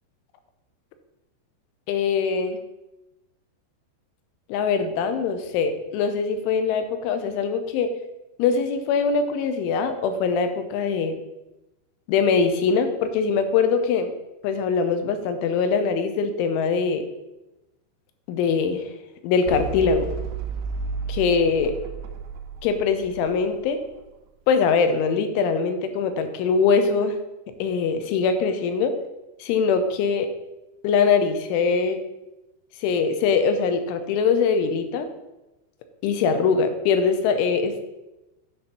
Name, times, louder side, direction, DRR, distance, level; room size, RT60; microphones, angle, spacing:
voice 1, 1.9-2.6 4.5-7.9 8.4-11.2 12.1-14.1 14.4-17.0 18.3-18.9 19.2-20.1 21.1-21.8 22.6-23.8 24.5-27.2 27.6-28.9 29.4-30.3 30.8-32.0 32.8-35.1 36.0-37.8, left 5 dB, 90° left, 8 dB, 3.3 m, -22 dB
sound 1, 19.5-24.0, right 5 dB, 80° right, 3.0 m, -33 dB
9.8 x 4.3 x 5.9 m, 1.0 s
omnidirectional pair, 5.4 m